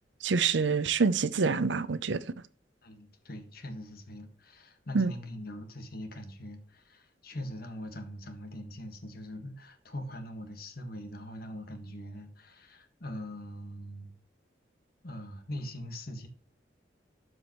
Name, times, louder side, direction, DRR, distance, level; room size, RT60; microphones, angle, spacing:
voice 1, 0.2-2.2 4.9-5.1, right 5 dB, 85° right, 0.6 m, -26 dB
voice 2, 2.8-14.1 15.0-16.3, equal, 55° left, 1.6 m, -42 dB
12.5 x 4.9 x 3.1 m
head